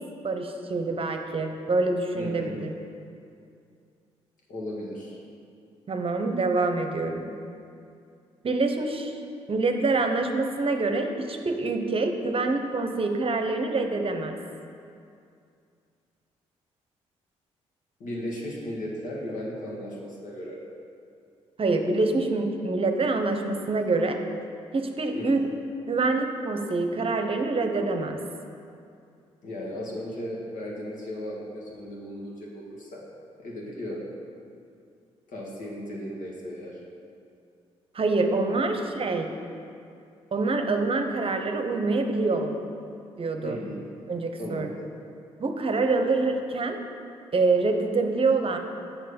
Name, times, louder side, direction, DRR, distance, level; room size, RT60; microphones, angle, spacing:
voice 1, 0.2-2.7 5.9-7.3 8.4-9.2 9.5-14.4 21.6-24.2 24.7-25.5 25.9-28.2 37.9-39.3 40.3-42.5 43.2-43.6 44.1-44.7 45.4-46.8 47.3-48.6, right 3 dB, 45° right, 5 dB, 0.8 m, -26 dB
voice 2, 2.2-2.6 4.5-5.2 18.0-20.6 25.1-25.3 29.4-33.0 33.4-34.0 35.3-36.8 38.5-38.6 43.4-43.8 44.4-44.7, left 1 dB, 70° left, -3 dB, 1.9 m, -36 dB
6.7 x 6.0 x 5.2 m, 2.5 s
supercardioid pair, 55°, 14 cm